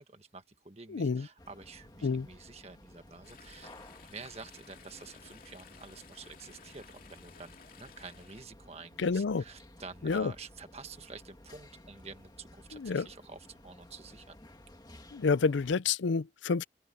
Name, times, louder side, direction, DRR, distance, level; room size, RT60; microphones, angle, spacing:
voice 1, 0.0-3.7 4.1-14.4, right 4 dB, 35° right, 1.6 m, -49 dB
voice 2, 0.9-1.3 2.0-2.3 9.0-9.4 10.0-10.3 12.7-13.1 15.1-16.6, left 4 dB, 75° left, 0.5 m, -29 dB
sound 1, 1.4-15.8, left 1 dB, 20° left, 2.1 m, -55 dB
Chatter / Stream, 3.2-8.5, left 5 dB, 45° left, 2.7 m, -56 dB
open air
head